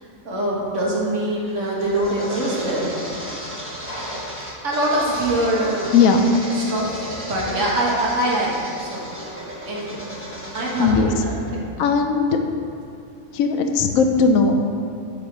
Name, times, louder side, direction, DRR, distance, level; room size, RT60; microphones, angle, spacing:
voice 1, 0.2-2.9 4.6-5.9 6.7-6.9 7.2-9.0 9.6-10.0 10.5-11.7, right 1 dB, 60° right, -5 dB, 1.7 m, -23 dB
sound 1, 1.3-10.9, equal, 10° right, 1.1 m, -33 dB
voice 2, 10.8-11.1 11.8-12.4 13.3-14.7, left 5 dB, 80° left, 5 dB, 1.0 m, -18 dB
8.2 x 3.3 x 6.0 m, 2.4 s
omnidirectional pair, 1.4 m